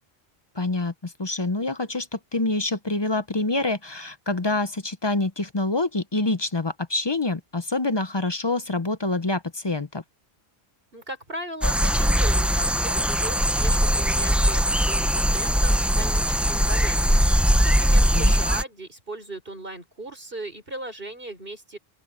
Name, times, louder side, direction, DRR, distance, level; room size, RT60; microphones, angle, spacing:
voice 1, 0.5-10.0 18.1-18.3, left 2 dB, 30° left, 0.7 m, -26 dB
voice 2, 10.9-21.8, right 1 dB, 60° right, 5.4 m, -37 dB
sound 1, 11.6-18.6, equal, ahead, 0.4 m, -21 dB
open air
omnidirectional pair, 1.1 m